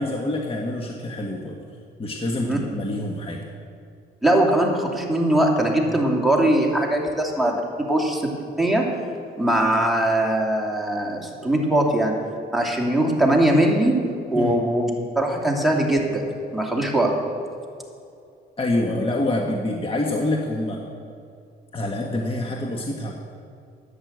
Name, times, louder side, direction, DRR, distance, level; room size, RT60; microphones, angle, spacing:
voice 1, 0.0-1.6 2.0-3.4 14.3-14.5 18.6-20.8 21.7-23.1, left 1 dB, 30° left, 0 dB, 1.5 m, -26 dB
voice 2, 4.2-8.2 8.6-8.8 9.4-12.1 12.5-13.9 14.3-14.9 15.1-16.2 16.5-17.1, right 1 dB, ahead, -1 dB, 2.6 m, -21 dB
11.0 x 8.9 x 8.0 m, 2.5 s
cardioid pair, 90°, 20 cm